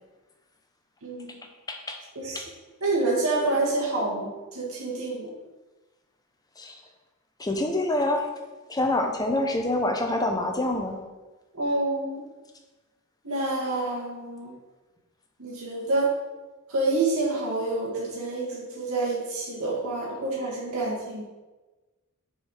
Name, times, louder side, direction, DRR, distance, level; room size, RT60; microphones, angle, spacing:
voice 1, 2.8-5.3 11.5-12.2 13.2-14.5 15.4-16.1 16.7-21.2, right 2 dB, 85° right, -5 dB, 2.0 m, -27 dB
voice 2, 7.4-8.3 8.7-11.0, left 1 dB, 15° left, 3 dB, 0.8 m, -26 dB
6.9 x 4.7 x 4.9 m, 1.2 s
head